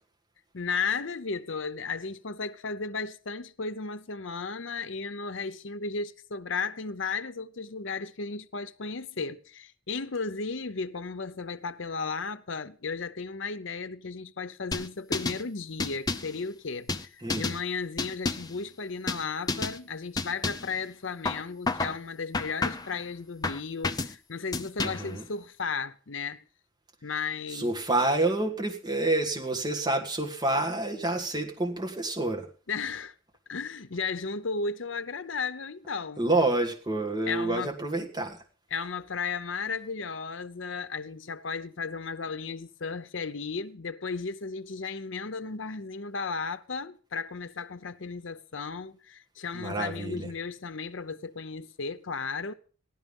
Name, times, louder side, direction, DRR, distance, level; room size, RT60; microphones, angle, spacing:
voice 1, 0.5-26.5 27.0-27.8 32.7-33.1 33.5-36.2 37.3-37.7 38.7-52.5, left 4 dB, 70° left, 0.8 m, -35 dB
sound 1, 14.7-15.4 15.8-16.4 16.9-17.6 18.0-18.6 19.1-19.2 19.5-19.8 20.2-20.7 21.3-22.0 22.3-23.0 23.4-24.1 24.5-25.1, left 3 dB, 20° left, 0.7 m, -30 dB
voice 2, 17.2-17.5 24.8-25.2 27.5-32.5 36.2-38.4 49.5-50.3, right 2 dB, 20° right, 1.8 m, -28 dB
15.5 x 11.5 x 5.4 m
head